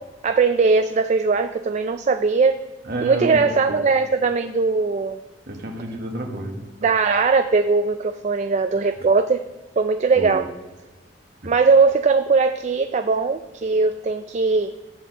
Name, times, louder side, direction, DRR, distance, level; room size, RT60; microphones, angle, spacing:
voice 1, 0.2-2.6 3.0-5.2 6.8-9.4 9.8-10.5 11.5-14.7, right 4 dB, 40° right, 8 dB, 0.4 m, -19 dB
voice 2, 2.8-3.8 5.5-6.7 10.1-10.4 11.4-11.5, right 2 dB, 55° right, 2 dB, 1.5 m, -30 dB
11.5 x 4.4 x 7.4 m, 1.2 s
head